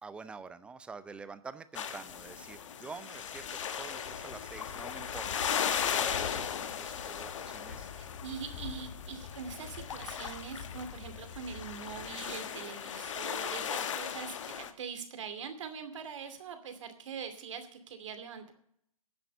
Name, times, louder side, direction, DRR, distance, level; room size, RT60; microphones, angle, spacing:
voice 1, 0.0-3.5 3.8-7.9 10.8-11.0, right 4 dB, 5° right, 13 dB, 0.5 m, -47 dB
sound 1, 1.7-14.7, left 8 dB, 60° left, 1.3 m, -37 dB
voice 2, 8.0-18.5, right 6 dB, 60° right, 8 dB, 2.6 m, -43 dB
10.5 x 7.7 x 9.5 m, 0.70 s
hypercardioid pair, 140°, 18 cm